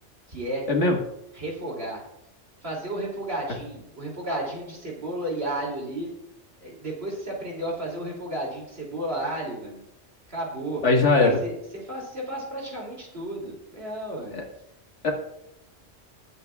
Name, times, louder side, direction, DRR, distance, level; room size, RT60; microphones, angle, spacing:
voice 1, 0.3-0.7 1.3-2.0 2.6-6.1 6.6-9.8 10.3-10.8 11.2-14.4, right 1 dB, 55° right, -2 dB, 3.1 m, -32 dB
voice 2, 10.8-11.4 14.3-14.4 15.0-15.1, left 3 dB, 65° left, 1 dB, 1.9 m, -20 dB
20.0 x 8.1 x 2.4 m, 0.81 s
omnidirectional pair, 1.3 m